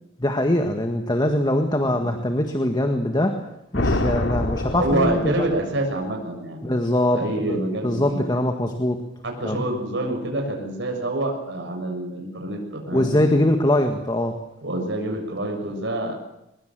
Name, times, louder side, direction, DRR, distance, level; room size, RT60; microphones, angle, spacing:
voice 1, 0.2-3.4 3.7-5.5 6.6-7.2 7.5-9.0 9.4-9.6 12.9-14.4, left 1 dB, 20° left, 5 dB, 1.7 m, -22 dB
sound 1, 3.7-5.9, left 1 dB, 70° left, 2.2 m, -26 dB
voice 2, 4.7-6.8 7.1-8.2 9.2-13.2 14.6-16.2, right 1 dB, 65° right, 2 dB, 6.7 m, -27 dB
23.5 x 21.5 x 7.6 m, 0.85 s
head